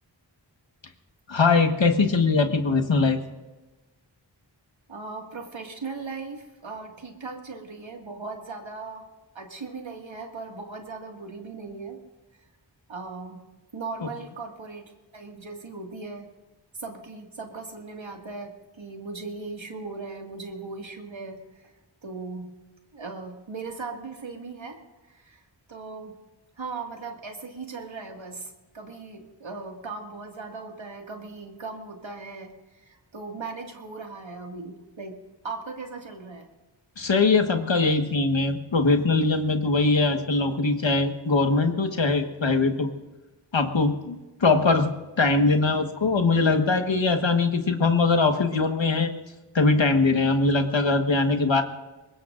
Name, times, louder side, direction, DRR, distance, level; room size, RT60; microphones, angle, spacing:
voice 1, 1.3-3.2 37.0-42.9 43.5-44.9 45.2-49.1 49.5-51.6, left 3 dB, 80° left, 6 dB, 1.5 m, -21 dB
voice 2, 4.9-9.1 9.3-12.0 12.9-13.5 13.7-14.8 15.1-16.3 16.7-21.7 22.0-22.5 22.9-25.4 25.7-26.2 26.6-36.5, right 4 dB, 85° right, 2 dB, 2.2 m, -38 dB
23.5 x 21.0 x 2.6 m, 1.1 s
wide cardioid pair, 45°, 45 cm